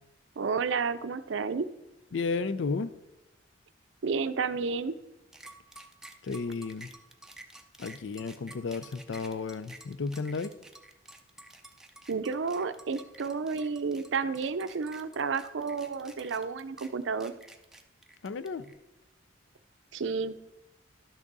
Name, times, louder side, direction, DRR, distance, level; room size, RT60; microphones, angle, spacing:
voice 1, 0.4-1.7 4.0-4.9 12.1-17.3 19.9-20.4, right 5 dB, 70° right, 0.5 m, -31 dB
voice 2, 2.1-2.9 6.2-6.9 7.8-10.5 18.2-18.6, left 4 dB, 70° left, 0.4 m, -33 dB
sound 1, 5.3-18.7, right 2 dB, 5° right, 0.6 m, -51 dB
11.5 x 6.1 x 4.0 m
head